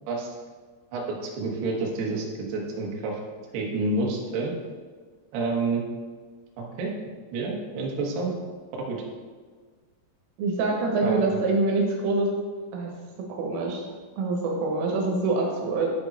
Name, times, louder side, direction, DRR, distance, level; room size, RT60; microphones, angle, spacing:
voice 1, 0.9-3.2 3.5-4.5 5.3-5.8 6.6-6.9 7.3-8.3 8.8-9.0 11.0-11.4, right 3 dB, 65° right, -2 dB, 3.0 m, -29 dB
voice 2, 10.4-12.3 12.7-12.9 13.4-13.8 14.2-15.9, right 3 dB, 85° right, 0 dB, 3.8 m, -25 dB
11.5 x 5.2 x 4.2 m, 1.5 s
omnidirectional pair, 5.7 m